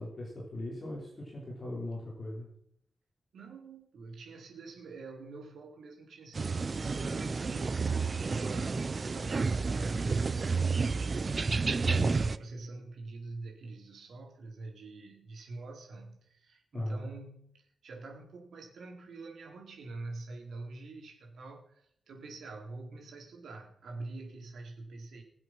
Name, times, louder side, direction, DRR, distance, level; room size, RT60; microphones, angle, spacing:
voice 1, 0.0-2.5 11.9-12.2 16.7-17.1, left 1 dB, 30° left, -4 dB, 4.3 m, -38 dB
voice 2, 3.3-11.4 12.1-25.2, right 3 dB, 75° right, 1 dB, 4.0 m, -45 dB
sound 1, 6.3-12.4, right 4 dB, 35° right, 0.5 m, -30 dB
21.0 x 7.9 x 6.0 m, 0.70 s
wide cardioid pair, 145°, 0 cm